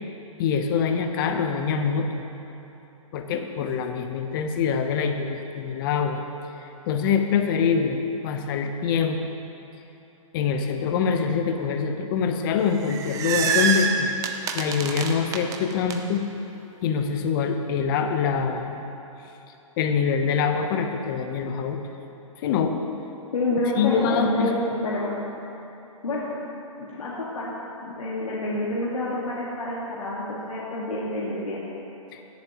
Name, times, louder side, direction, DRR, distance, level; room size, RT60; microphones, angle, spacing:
voice 1, 0.4-2.2 3.1-6.2 6.6-9.2 10.3-14.1 14.5-16.2 16.8-18.8 19.8-21.8 22.4-22.8 23.8-24.5 32.1-32.2, left 6 dB, 40° left, 5 dB, 0.9 m, -24 dB
sound 1, 12.6-16.0, right 5 dB, 20° right, 0.5 m, -26 dB
voice 2, 23.3-25.2 26.0-26.3 26.8-27.5 27.8-31.6, left 1 dB, 90° left, -7 dB, 1.8 m, -28 dB
17.0 x 7.4 x 3.0 m, 3.0 s
hypercardioid pair, 140°, 18 cm